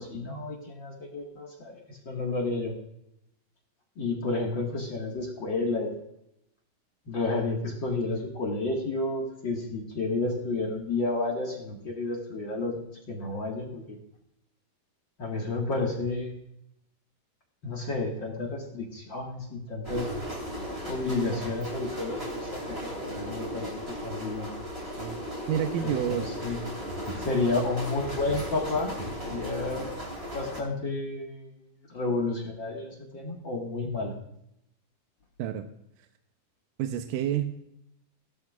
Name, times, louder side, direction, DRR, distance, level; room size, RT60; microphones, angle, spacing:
voice 1, 0.0-2.7 4.0-6.0 7.1-14.0 15.2-16.4 17.6-20.1 20.9-24.5 25.8-26.6 27.2-28.9 29.2-29.9 30.3-31.6 31.9-34.1, left 3 dB, 45° left, -1 dB, 1.7 m, -31 dB
sound 1, 19.8-30.6, equal, 15° right, 3.4 m, -36 dB
voice 2, 25.0-26.3 35.4-35.7 36.8-37.6, right 10 dB, 80° right, 6 dB, 2.2 m, -29 dB
17.0 x 12.5 x 2.4 m, 0.79 s
omnidirectional pair, 4.0 m